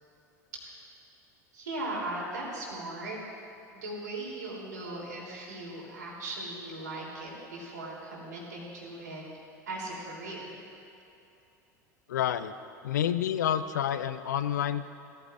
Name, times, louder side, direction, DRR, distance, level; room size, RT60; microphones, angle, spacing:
voice 1, 1.5-3.2 3.7-9.2 9.7-10.6, right 2 dB, 80° right, -4 dB, 3.4 m, -38 dB
voice 2, 12.1-12.5 12.8-14.9, left 10 dB, 75° left, 13 dB, 0.5 m, -29 dB
18.0 x 14.0 x 2.6 m, 2.8 s
hypercardioid pair, 80°, 10 cm